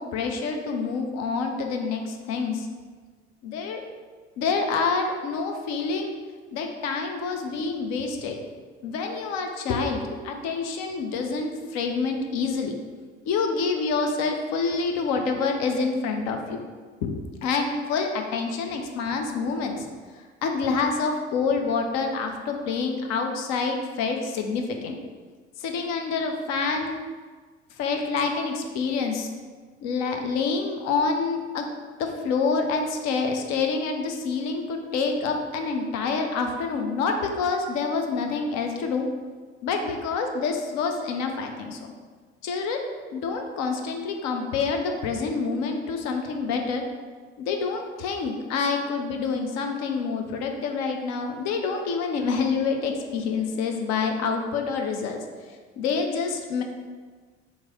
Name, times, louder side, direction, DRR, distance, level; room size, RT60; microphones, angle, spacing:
voice 1, 0.0-2.7 3.4-3.8 4.4-6.1 6.5-8.4 8.8-12.8 13.3-16.6 17.0-19.9 20.4-25.0 25.6-27.0 27.8-29.3 29.8-31.6 32.0-39.1 39.6-41.8 42.4-42.8 43.1-46.8 47.4-55.2 55.8-56.6, left 4 dB, 55° left, 4 dB, 0.6 m, -27 dB
3.1 x 2.5 x 4.0 m, 1.5 s
hypercardioid pair, 60°, 32 cm